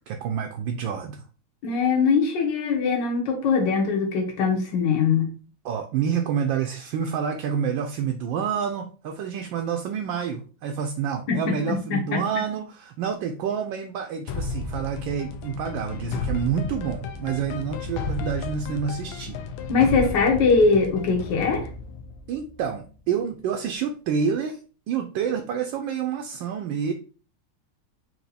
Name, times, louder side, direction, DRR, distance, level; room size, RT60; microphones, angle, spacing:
voice 1, 0.1-1.2 5.6-19.4 22.3-24.6 24.9-26.9, right 7 dB, 75° right, 4 dB, 1.3 m, -28 dB
voice 2, 1.6-5.3 11.3-11.4 11.7-12.2 19.7-21.7, left 5 dB, 65° left, 2 dB, 1.7 m, -21 dB
sound 1, 14.3-23.1, left 4 dB, 85° left, 1.4 m, -33 dB
4.6 x 2.8 x 4.0 m, 0.37 s
omnidirectional pair, 2.2 m